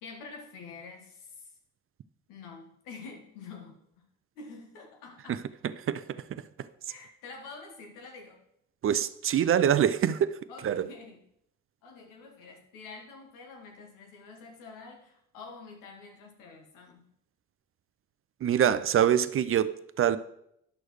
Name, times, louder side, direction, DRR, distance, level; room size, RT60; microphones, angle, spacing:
voice 1, 0.0-1.5 2.3-3.8 4.3-5.4 6.9-8.4 10.5-11.2 11.8-17.1, left 4 dB, 80° left, 1.4 m, -47 dB
voice 2, 8.8-10.4 10.6-10.9 18.4-20.2, right 9 dB, 40° right, 0.5 m, -24 dB
10.5 x 6.3 x 3.1 m
hypercardioid pair, 55°, 32 cm